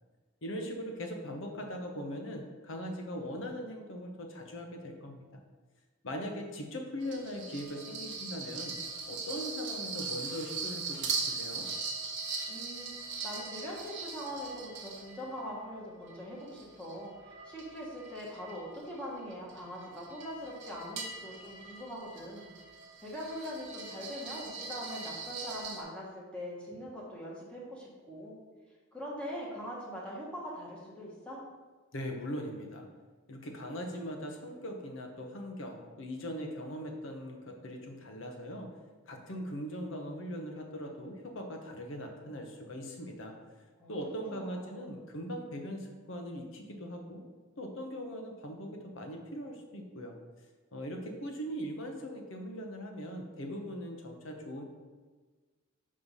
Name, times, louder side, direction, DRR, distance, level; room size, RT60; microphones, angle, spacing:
voice 1, 0.4-5.4 6.0-8.8 9.1-11.7 31.9-32.9 33.3-38.7 39.1-43.3 43.9-47.2 47.6-50.2 50.7-54.6, equal, 65° left, 2 dB, 0.9 m, -40 dB
sound 1, 7.0-15.5 16.1-25.8, right 4 dB, 60° right, 1.0 m, -40 dB
voice 2, 12.5-22.5 23.0-28.3 28.9-31.4 43.8-43.9 44.3-44.9, equal, 5° left, -6 dB, 1.2 m, -42 dB
5.4 x 3.2 x 5.4 m, 1.4 s
head